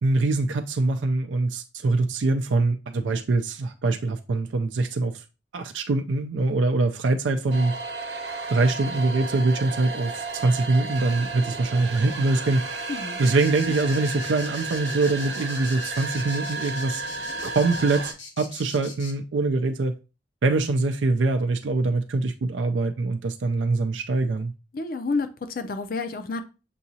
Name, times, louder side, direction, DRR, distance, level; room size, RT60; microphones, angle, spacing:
voice 1, 0.0-5.1 5.5-7.7 8.5-12.6 13.2-17.0 17.4-19.9 20.4-24.5, right 3 dB, 75° right, 0.4 m, -24 dB
sound 1, 7.5-18.1, right 3 dB, 60° right, 0.9 m, -33 dB
voice 2, 12.9-13.2 13.7-13.8 24.7-26.4, left 3 dB, 50° left, 0.5 m, -29 dB
sound 2, 13.2-19.1, left 4 dB, 80° left, 1.2 m, -42 dB
6.9 x 2.8 x 2.7 m
head